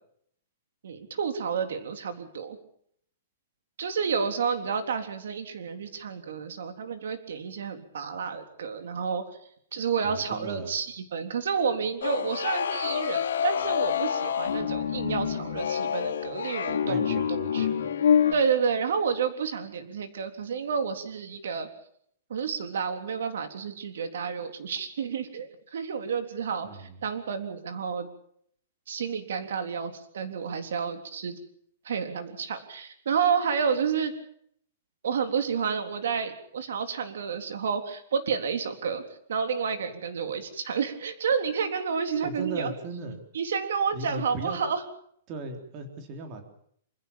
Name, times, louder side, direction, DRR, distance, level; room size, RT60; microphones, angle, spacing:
voice 1, 0.8-2.6 3.8-9.2 9.7-17.7 18.3-21.7 22.3-28.1 28.9-31.4 31.8-34.1 35.0-39.0 39.3-42.7 43.3-44.8, right 6 dB, 75° right, 7 dB, 3.6 m, -30 dB
voice 2, 10.0-10.7 16.8-17.8 26.6-27.0 42.2-43.2 43.9-44.6 45.3-46.4, right 3 dB, 25° right, 4 dB, 3.7 m, -37 dB
sound 1, 12.0-18.3, left 8 dB, 85° left, 3.0 m, -27 dB
27.5 x 16.5 x 7.2 m, 0.66 s
hypercardioid pair, 170°, 0 cm